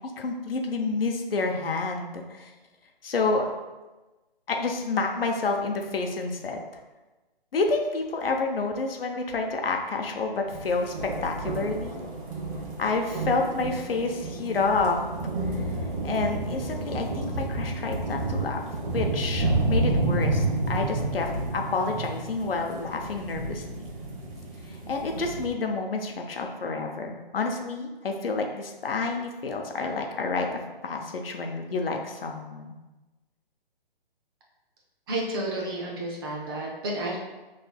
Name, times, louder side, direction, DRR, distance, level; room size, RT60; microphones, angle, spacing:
voice 1, 0.2-2.5 3.0-3.5 4.5-6.6 7.5-10.9 11.2-12.0 12.8-15.0 16.0-18.6 18.9-23.8 24.9-30.5 30.8-32.8, left 3 dB, 70° left, 3 dB, 0.7 m, -29 dB
sound 1, 10.5-25.5, right 2 dB, 55° right, 1.1 m, -30 dB
voice 2, 35.1-37.2, right 1 dB, 25° right, -2 dB, 0.5 m, -31 dB
5.1 x 3.2 x 2.3 m, 1.1 s
figure-of-eight pair, 140°, 30 cm